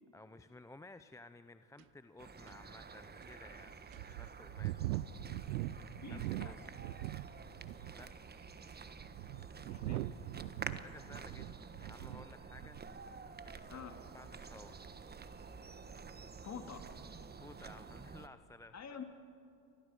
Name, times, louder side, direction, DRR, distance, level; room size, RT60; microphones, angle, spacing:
voice 1, 0.1-3.8 4.0-5.1 6.1-6.6 7.9-8.3 10.8-11.5 11.8-12.8 13.5-14.8 17.4-18.7, left 2 dB, 5° left, 11 dB, 0.5 m, -56 dB
sound 1, 1.8-1.9 2.5-2.6 3.2-3.3 3.9-7.3 7.6-8.1 8.8-12.3 12.5-12.9, right 16 dB, 85° right, 0.7 m, -41 dB
sound 2, 2.2-18.3, right 5 dB, 20° right, 1.3 m, -50 dB
voice 2, 6.0-6.6 9.6-10.1 13.7-13.9 16.4-16.8 18.7-19.0, left 6 dB, 30° left, 5 dB, 3.0 m, -47 dB
29.5 x 24.0 x 5.3 m, 2.8 s
hypercardioid pair, 90°, 49 cm